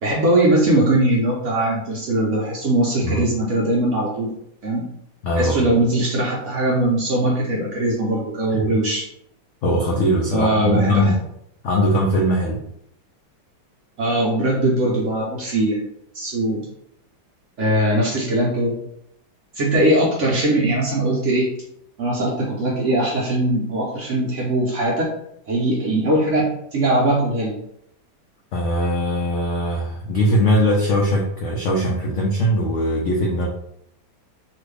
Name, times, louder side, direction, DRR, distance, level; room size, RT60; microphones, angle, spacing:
voice 1, 0.0-4.3 4.6-4.8 5.4-9.0 10.3-11.1 14.0-15.8 16.1-16.6 17.6-18.8 19.6-21.5 22.0-25.1 25.5-27.6, right 1 dB, 65° right, -3 dB, 0.7 m, -20 dB
voice 2, 5.2-5.7 8.5-8.8 9.6-11.2 11.6-12.6 28.5-33.5, equal, 90° left, -1 dB, 0.6 m, -20 dB
2.9 x 2.4 x 3.3 m, 0.74 s
omnidirectional pair, 1.9 m